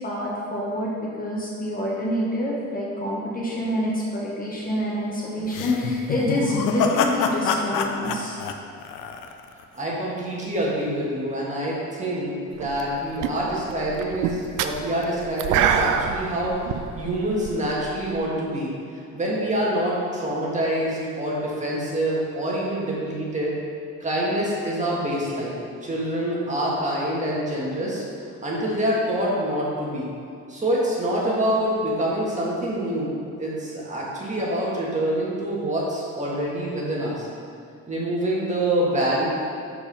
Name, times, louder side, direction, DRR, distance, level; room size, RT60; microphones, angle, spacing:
voice 1, 0.0-8.4, left 1 dB, 30° left, -4 dB, 1.1 m, -27 dB
sound 1, 5.5-9.6, left 6 dB, 85° left, 0.6 m, -26 dB
voice 2, 9.7-16.5 16.9-18.7 19.1-23.5 24.0-25.6 25.8-28.0 28.4-30.1 30.5-33.1 33.4-37.3 37.9-39.3, right 1 dB, 25° right, -5 dB, 1.7 m, -26 dB
sound 2, 12.6-12.9 13.2-18.2, right 8 dB, 85° right, 0.5 m, -26 dB
6.8 x 4.7 x 5.4 m, 2.4 s
cardioid pair, 130°, 31 cm